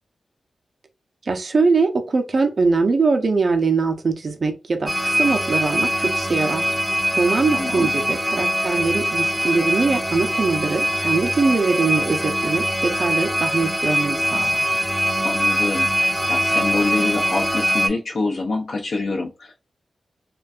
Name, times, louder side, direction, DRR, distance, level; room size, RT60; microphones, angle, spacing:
voice 1, 1.2-6.8 7.2-14.8, right 4 dB, 60° right, 0.4 m, -22 dB
sound 1, 4.9-17.9, equal, ahead, 0.4 m, -22 dB
voice 2, 7.5-7.9 15.2-19.6, left 3 dB, 70° left, 0.4 m, -26 dB
2.5 x 2.1 x 2.3 m
cardioid pair, 55°, 0 cm